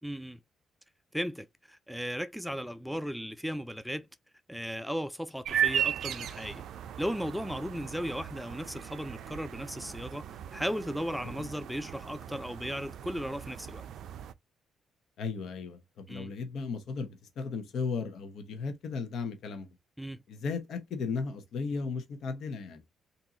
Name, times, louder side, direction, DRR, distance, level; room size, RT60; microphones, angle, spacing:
voice 1, 0.0-0.4 1.1-4.1 4.5-6.6 7.0-10.3 10.5-13.9 16.1-16.3 20.0-20.2, equal, ahead, 0.4 m, -36 dB
sound 1, 5.4-14.3, right 9 dB, 70° right, 0.4 m, -36 dB
voice 2, 15.2-19.7 20.3-22.8, left 5 dB, 70° left, 1.0 m, -35 dB
3.8 x 2.8 x 2.7 m
cardioid pair, 90°, 0 cm